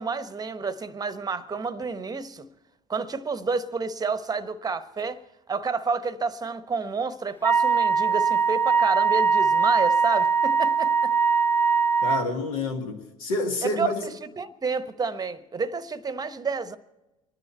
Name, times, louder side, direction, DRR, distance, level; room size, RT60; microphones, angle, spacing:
voice 1, 0.0-2.5 2.9-5.2 5.5-11.1 13.6-16.8, right 4 dB, 20° right, 0.9 m, -30 dB
Wind instrument woodwind instrument, 7.4-12.3, right 5 dB, 10° left, 0.8 m, -21 dB
voice 2, 12.0-14.0, left 2 dB, 75° left, 2.0 m, -28 dB
26.0 x 10.5 x 4.4 m
hypercardioid pair, 65°, 18 cm